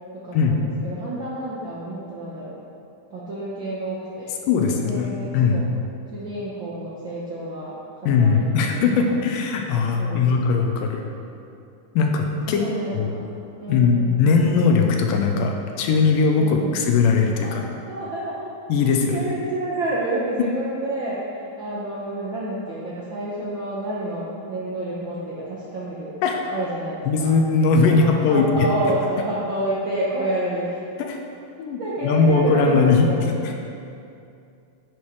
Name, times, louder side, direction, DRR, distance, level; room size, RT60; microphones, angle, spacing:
voice 1, 0.2-2.5 3.1-5.7 6.1-7.8 8.2-9.1 10.0-10.5 12.5-13.2 13.6-14.1 14.5-14.6 16.4-16.8 17.4-17.5 17.9-18.5 19.1-26.1 26.5-27.3 27.8-30.8 31.8-33.6, right 1 dB, 80° right, -7 dB, 1.0 m, -29 dB
voice 2, 4.5-5.6 8.0-11.0 12.0-12.6 12.9-13.1 13.7-17.7 18.7-19.2 26.2-26.4 27.1-28.7 31.0-31.2 31.6-33.1 33.4-33.5, left 4 dB, 80° left, 3 dB, 2.3 m, -19 dB
10.5 x 6.2 x 4.8 m, 2.5 s
omnidirectional pair, 4.0 m